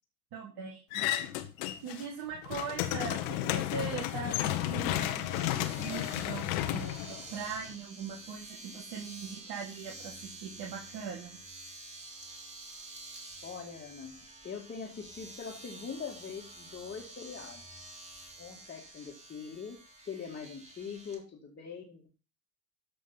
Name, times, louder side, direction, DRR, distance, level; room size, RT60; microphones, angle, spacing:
voice 1, 0.3-1.0 1.8-11.3, right 6 dB, 55° right, -2 dB, 3.5 m, -41 dB
sound 1, 0.9-2.0 2.3-7.7, left 14 dB, 60° left, 1.4 m, -33 dB
Domestic sounds home sounds, 4.4-21.2, right 2 dB, 15° right, 3.4 m, -49 dB
voice 2, 13.4-14.2 14.4-17.9 18.4-22.1, left 6 dB, 25° left, -2 dB, 2.1 m, -43 dB
13.5 x 5.2 x 5.6 m, 0.33 s
hypercardioid pair, 85°, 46 cm